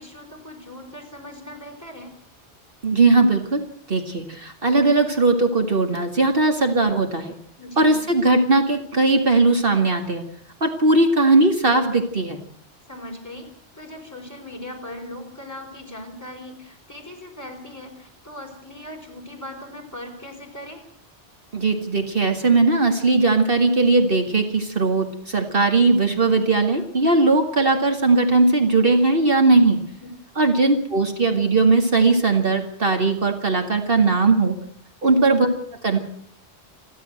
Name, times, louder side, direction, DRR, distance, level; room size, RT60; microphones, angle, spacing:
voice 1, 0.0-2.1 7.6-8.1 12.9-13.5 13.7-20.8 35.0-35.3, left 1 dB, 15° left, 1 dB, 4.7 m, -39 dB
voice 2, 2.8-3.6 3.9-7.3 7.8-10.2 10.6-12.4 21.5-29.8 30.4-34.6 35.0-35.5 35.8-36.0, right 3 dB, 55° right, 4 dB, 2.2 m, -19 dB
29.0 x 11.5 x 7.8 m, 0.63 s
omnidirectional pair, 1.2 m